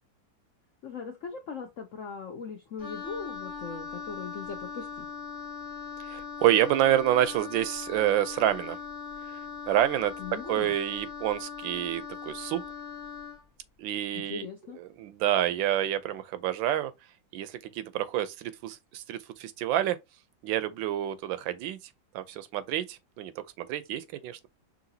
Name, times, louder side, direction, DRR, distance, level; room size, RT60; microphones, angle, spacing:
voice 1, 0.8-5.1 10.2-10.7 14.1-14.8, left 6 dB, 70° left, 0.7 m, -39 dB
Wind instrument woodwind instrument, 2.8-13.4, left 5 dB, 30° left, 1.1 m, -40 dB
voice 2, 6.0-8.8 9.3-9.4 9.7-10.1 10.5-12.6 13.8-14.5 14.8-16.9 17.3-20.0 20.4-21.8 22.1-24.4, right 12 dB, 85° right, 1.3 m, -28 dB
5.8 x 2.6 x 2.7 m
omnidirectional pair, 2.1 m